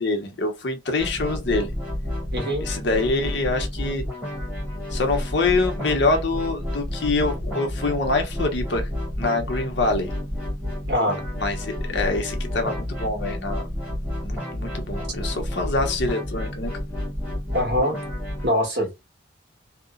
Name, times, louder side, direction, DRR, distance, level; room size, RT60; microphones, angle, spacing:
voice 1, 0.0-1.7 2.6-4.0 4.9-8.9 9.2-10.1 11.4-13.6 14.2-16.7, left 3 dB, 65° left, 0.8 m, -25 dB
sound 1, 1.0-18.5, left 1 dB, 5° right, 1.2 m, -30 dB
voice 2, 2.3-2.7 10.9-11.2 17.5-18.0 18.4-19.0, equal, 60° right, 1.3 m, -23 dB
2.8 x 2.1 x 2.4 m
head